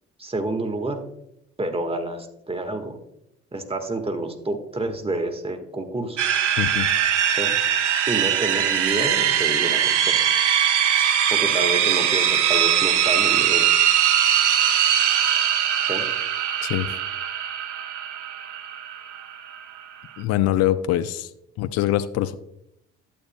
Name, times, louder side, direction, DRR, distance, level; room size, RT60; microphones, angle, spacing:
voice 1, 0.2-1.0 1.6-3.0 3.5-6.2 7.3-7.6 8.1-10.2 11.3-13.7 15.8-16.1, right 2 dB, 15° right, 5 dB, 1.4 m, -29 dB
sound 1, 6.2-20.2, right 9 dB, 85° right, 0.7 m, -21 dB
voice 2, 6.6-6.9 16.6-16.9 20.2-21.3 21.6-22.3, left 13 dB, 50° left, 13 dB, 0.5 m, -23 dB
11.5 x 8.3 x 2.2 m, 0.80 s
hypercardioid pair, 50°, 35 cm